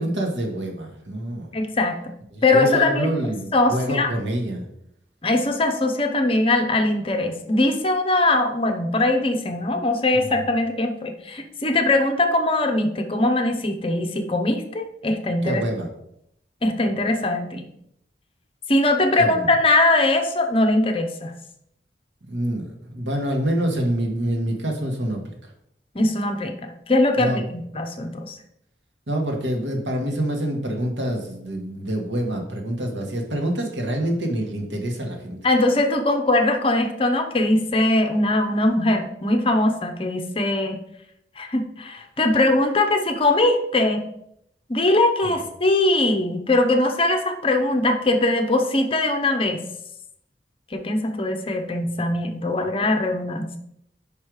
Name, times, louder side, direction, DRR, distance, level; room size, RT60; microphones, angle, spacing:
voice 1, 0.0-1.5 2.3-4.6 10.2-10.4 15.4-15.9 19.2-19.5 22.3-25.5 27.2-27.4 29.1-35.4, right 1 dB, 85° right, 1 dB, 1.4 m, -26 dB
voice 2, 1.5-2.0 2.4-3.1 3.5-4.1 5.2-15.6 16.6-17.7 18.7-21.3 25.9-28.4 35.4-40.8 41.4-44.0 44.7-49.6 50.7-53.5, left 2 dB, 30° left, 5 dB, 0.7 m, -21 dB
5.4 x 5.1 x 4.7 m, 0.74 s
head